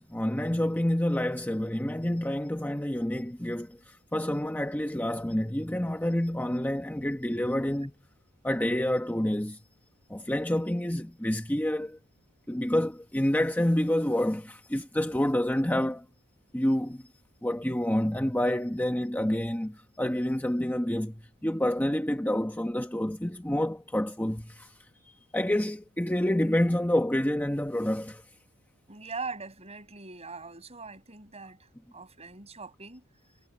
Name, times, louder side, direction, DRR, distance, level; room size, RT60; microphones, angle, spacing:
voice 1, 0.0-7.9 8.4-9.6 10.1-12.0 12.5-16.0 16.5-17.0 17.4-24.8 25.0-28.2, left 1 dB, 10° left, 1.1 m, -28 dB
voice 2, 28.9-33.0, right 4 dB, 30° right, 7.3 m, -41 dB
head